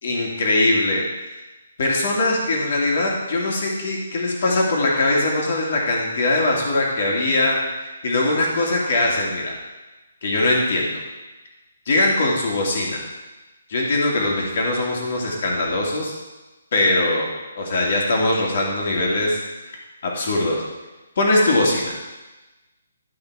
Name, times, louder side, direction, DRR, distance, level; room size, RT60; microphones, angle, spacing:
voice 1, 0.0-1.0 1.8-9.6 10.2-11.0 11.9-13.0 13.7-16.1 16.7-17.3 17.6-19.4 20.0-20.6 21.2-21.9, left 2 dB, 50° left, -2 dB, 2.5 m, -21 dB
12.0 x 5.6 x 4.8 m, 1.1 s
hypercardioid pair, 165°, 0 cm